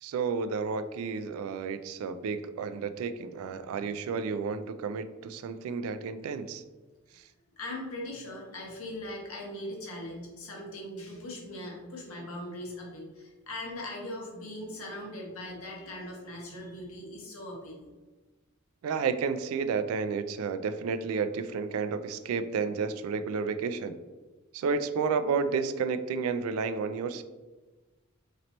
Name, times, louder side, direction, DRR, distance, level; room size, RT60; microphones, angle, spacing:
voice 1, 0.0-6.6 18.8-24.0 24.5-27.2, right 5 dB, 85° right, 12 dB, 0.3 m, -31 dB
voice 2, 7.6-17.9, left 1 dB, 85° left, -2 dB, 1.1 m, -40 dB
3.0 x 2.9 x 4.0 m, 1.2 s
head